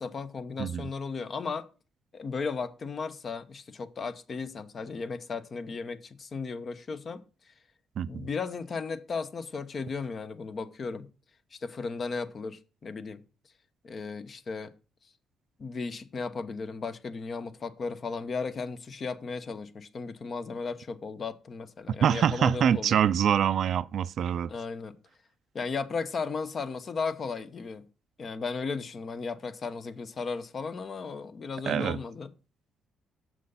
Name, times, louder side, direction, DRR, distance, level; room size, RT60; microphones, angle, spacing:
voice 1, 0.0-1.7 2.1-7.2 8.1-11.1 11.5-13.2 13.8-14.7 15.6-23.0 24.5-25.0 25.5-27.9 28.2-32.3, left 4 dB, 45° left, 0.8 m, -35 dB
voice 2, 0.6-0.9 8.0-8.3 22.0-24.5 31.7-32.0, right 9 dB, 65° right, 0.4 m, -25 dB
6.8 x 6.1 x 5.5 m
cardioid pair, 90°, 0 cm